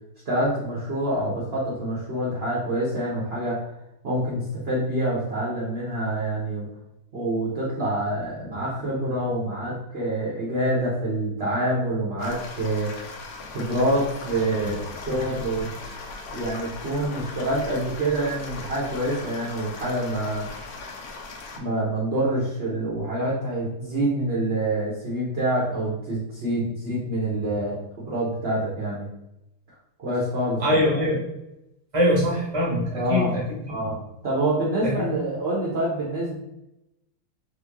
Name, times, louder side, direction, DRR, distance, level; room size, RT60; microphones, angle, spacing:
voice 1, 0.3-3.6 4.0-6.6 7.1-12.9 13.5-15.7 16.3-20.5 21.5-27.8 28.1-29.1 30.0-30.8 32.9-33.4 33.7-36.3, right 1 dB, 45° right, -6 dB, 0.9 m, -26 dB
sound 1, 12.2-21.6, left 3 dB, 70° left, 0.9 m, -38 dB
voice 2, 30.6-31.2 31.9-33.8 34.8-35.1, left 1 dB, 20° right, -3 dB, 1.1 m, -23 dB
3.7 x 3.5 x 3.5 m, 0.88 s
omnidirectional pair, 2.3 m